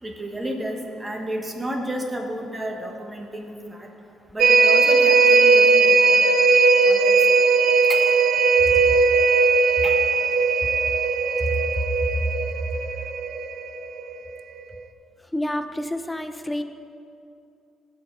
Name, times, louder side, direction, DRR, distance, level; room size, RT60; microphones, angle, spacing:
voice 1, 0.0-3.9 4.3-6.5 6.9-7.4 7.9-8.1 9.8-10.0, right 1 dB, 20° right, 2 dB, 1.4 m, -32 dB
sound 1, 4.4-14.2 14.6-14.7, right 4 dB, 80° right, 0.5 m, -18 dB
voice 2, 15.3-16.6, left 1 dB, 10° left, 8 dB, 0.6 m, -28 dB
15.5 x 5.3 x 4.0 m, 2.5 s
cardioid pair, 90°, 0 cm